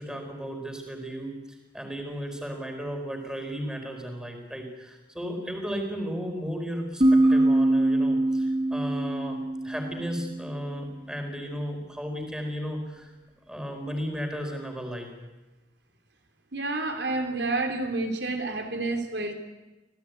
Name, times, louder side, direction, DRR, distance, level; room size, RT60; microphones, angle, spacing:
voice 1, 0.0-9.4 9.6-13.1 13.5-15.1, equal, 5° right, 3 dB, 4.6 m, -34 dB
sound 1, 7.0-10.6, right 1 dB, 35° right, 2.0 m, -23 dB
voice 2, 16.5-19.3, right 2 dB, 70° right, 4 dB, 3.4 m, -29 dB
27.0 x 17.5 x 9.5 m, 1.1 s
head